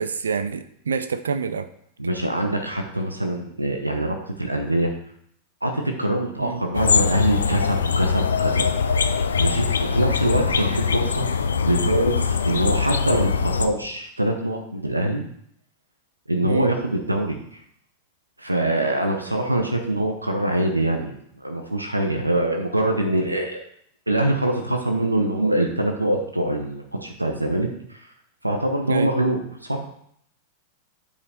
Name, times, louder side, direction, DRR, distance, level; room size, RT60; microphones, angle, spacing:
voice 1, 0.0-1.7 6.4-6.6 16.4-16.7 28.9-29.1, right 5 dB, 70° right, 11 dB, 0.5 m, -27 dB
voice 2, 2.0-4.9 5.6-8.7 9.4-11.3 11.6-15.2 16.3-17.4 18.4-23.6 24.1-28.0 28.4-29.8, right 1 dB, 85° right, 4 dB, 0.9 m, -24 dB
sound 1, 6.7-13.7, left 5 dB, 70° left, 0.5 m, -22 dB
8.5 x 5.0 x 4.3 m, 0.68 s
figure-of-eight pair, 90°, 0 cm